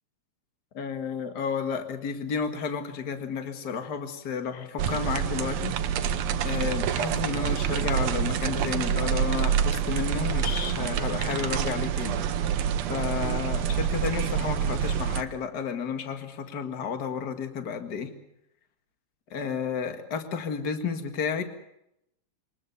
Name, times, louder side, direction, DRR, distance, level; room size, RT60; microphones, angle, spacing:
voice 1, 0.7-6.1 6.4-18.1 19.3-21.4, left 6 dB, 35° left, 6 dB, 1.9 m, -32 dB
sound 1, 4.8-15.2, right 8 dB, 65° right, 1.9 m, -27 dB
24.5 x 20.0 x 6.9 m, 0.80 s
omnidirectional pair, 3.8 m